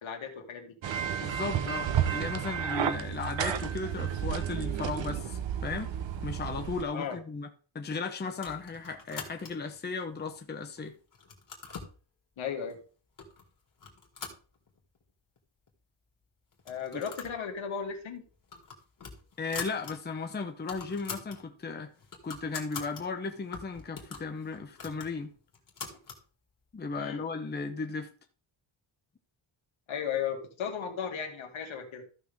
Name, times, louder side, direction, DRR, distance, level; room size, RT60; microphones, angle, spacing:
voice 1, 0.0-0.7 6.9-7.2 12.4-12.8 16.7-18.2 27.0-27.2 29.9-32.0, left 7 dB, 75° left, 2.2 m, -35 dB
sound 1, 0.8-6.8, right 9 dB, 65° right, 1.0 m, -32 dB
voice 2, 1.2-6.0 6.2-7.5 7.7-10.9 16.9-17.0 19.4-21.9 22.2-25.3 26.7-28.1, left 4 dB, 20° left, 0.8 m, -36 dB
sound 2, 8.3-9.8 10.3-10.8 11.1-12.0 12.7-12.8 13.2-13.5 13.8-15.0 15.4-15.5 15.7-15.8 16.5-17.4 17.7-17.9 18.3-19.9 20.3-20.4 20.6-21.4 21.8-23.0 23.5-26.2, left 5 dB, 40° left, 2.2 m, -44 dB
14.5 x 5.9 x 3.5 m
wide cardioid pair, 175°, 47 cm